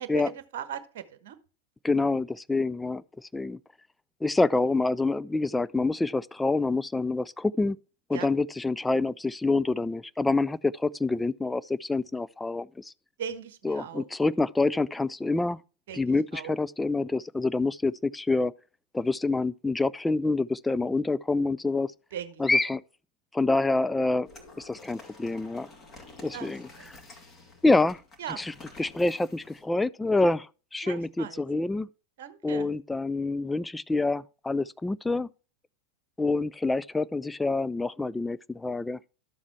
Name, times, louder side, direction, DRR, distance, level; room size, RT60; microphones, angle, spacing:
voice 1, 0.0-1.4 8.1-8.3 13.2-14.0 15.9-16.5 22.1-22.4 26.3-26.9 28.2-28.4 30.8-31.4 32.2-32.7, right 9 dB, 55° right, 1.2 m, -39 dB
voice 2, 1.8-3.6 4.2-7.8 8.1-12.9 13.6-15.6 15.9-18.5 18.9-21.9 22.4-22.8 23.3-24.3 24.6-25.7 26.2-26.7 27.6-28.0 28.4-31.9 32.4-35.3 36.2-39.0, left 3 dB, 10° left, 0.4 m, -27 dB
sound 1, 24.2-29.6, left 3 dB, 25° left, 2.6 m, -50 dB
12.5 x 7.3 x 3.3 m
figure-of-eight pair, 90°, 0 cm